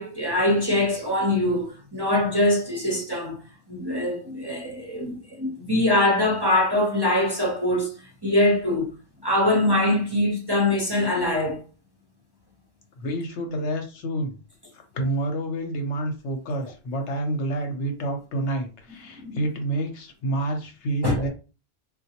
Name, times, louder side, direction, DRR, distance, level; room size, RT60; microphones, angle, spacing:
voice 1, 0.0-3.4 3.7-7.9 8.2-8.9 9.2-11.6 19.2-19.4 21.0-21.2, left 1 dB, 25° right, 0.7 m, -23 dB
voice 2, 13.0-14.3 14.7-21.3, right 1 dB, 75° left, 1.0 m, -28 dB
3.7 x 2.2 x 2.8 m
omnidirectional pair, 1.2 m